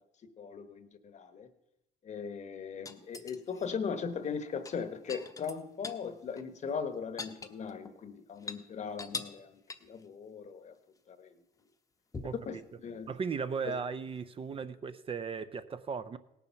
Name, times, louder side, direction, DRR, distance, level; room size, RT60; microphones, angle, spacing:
voice 1, 0.4-1.5 2.0-10.7 11.1-11.4 12.5-13.1 13.6-13.7, left 6 dB, 45° left, 10 dB, 1.1 m, -39 dB
sound 1, 2.9-3.7 4.5-6.1 6.4-6.5 6.8-8.0 8.3-8.6 9.0-9.4 9.7-10.0 12.1-12.5 14.2-14.3, left 4 dB, 20° left, 0.9 m, -43 dB
voice 2, 13.1-16.2, right 5 dB, 35° right, 12 dB, 0.5 m, -36 dB
17.5 x 7.1 x 5.8 m, 0.89 s
cardioid pair, 110°, 17 cm